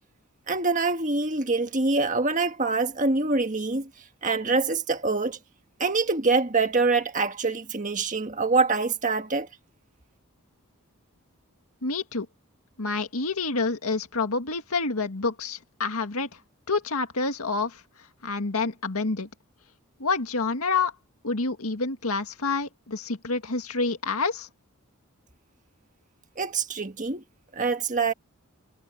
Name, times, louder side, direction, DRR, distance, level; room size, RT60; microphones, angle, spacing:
voice 1, 0.5-3.9 4.2-5.4 5.8-9.5 26.4-27.2 27.5-28.1, right 3 dB, 35° right, 1.5 m, -25 dB
voice 2, 11.8-12.3 12.8-16.3 16.7-17.8 18.2-19.3 20.0-20.9 21.2-24.5, left 4 dB, 85° left, 2.0 m, -28 dB
head